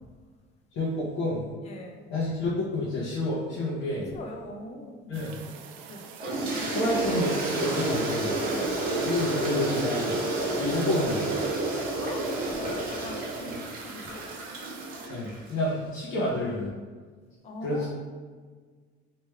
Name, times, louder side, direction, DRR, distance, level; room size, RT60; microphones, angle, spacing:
voice 1, 0.7-1.5 2.1-4.1 5.1-5.3 6.7-8.3 9.0-10.2 10.6-11.3 15.1-16.7 17.6-17.9, left 2 dB, 80° left, -7 dB, 1.1 m, -29 dB
voice 2, 1.6-2.1 4.1-5.2 5.9-6.0 8.5-8.9 10.5-10.6 12.0-14.2 16.1-16.4 17.4-17.9, left 2 dB, 35° left, 1 dB, 0.6 m, -41 dB
sound 1, 5.1-15.1, right 7 dB, 80° right, 0.5 m, -47 dB
Toilet flush, 6.2-15.6, right 2 dB, 45° right, 0.9 m, -30 dB
3.3 x 3.0 x 4.5 m, 1.5 s
cardioid pair, 175°, 20 cm